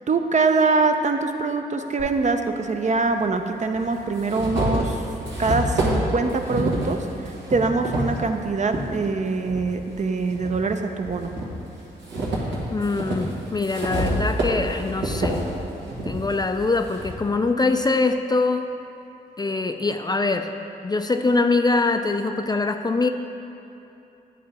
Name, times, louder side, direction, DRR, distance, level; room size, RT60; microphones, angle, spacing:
voice 1, 0.1-5.0 5.4-7.0 7.3-11.3, right 3 dB, 40° right, 6 dB, 0.5 m, -23 dB
sound 1, 2.0-2.1 3.2-3.3 3.7-8.9 9.4-10.6 11.0-17.2, right 1 dB, 85° right, 1.4 m, -28 dB
voice 2, 12.7-15.4 16.1-18.7 19.4-20.5 20.8-23.1, left 3 dB, 25° left, 6 dB, 0.3 m, -23 dB
9.3 x 3.8 x 4.2 m, 2.8 s
cardioid pair, 55°, 18 cm